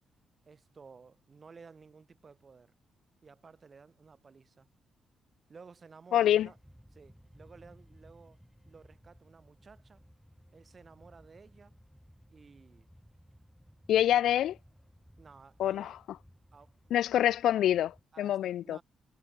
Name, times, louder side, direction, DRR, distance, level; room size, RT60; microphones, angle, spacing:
voice 1, 0.5-2.7 3.2-4.7 5.5-6.6 6.9-8.4 8.7-10.0 10.5-11.8 12.3-12.9 15.2-16.0 16.5-16.9 18.1-18.8, right 5 dB, 45° right, 7.5 m, -55 dB
sound 1, 5.9-18.0, equal, ahead, 6.8 m, -59 dB
voice 2, 6.1-6.5 13.9-14.6 15.6-16.0 16.9-18.8, left 11 dB, 75° left, 0.6 m, -26 dB
supercardioid pair, 60°, 0 cm